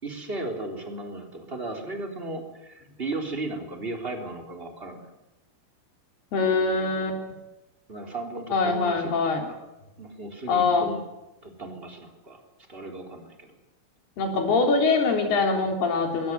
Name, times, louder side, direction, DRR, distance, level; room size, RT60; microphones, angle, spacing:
voice 1, 0.0-5.1 7.9-9.6 10.0-11.0 11.4-12.4 12.7-13.5, right 2 dB, 15° right, 3 dB, 3.5 m, -35 dB
voice 2, 6.3-7.2 8.5-9.5 10.5-10.9 14.2-16.3, left 4 dB, 85° left, 3 dB, 5.8 m, -23 dB
21.0 x 18.5 x 9.5 m, 0.98 s
omnidirectional pair, 4.4 m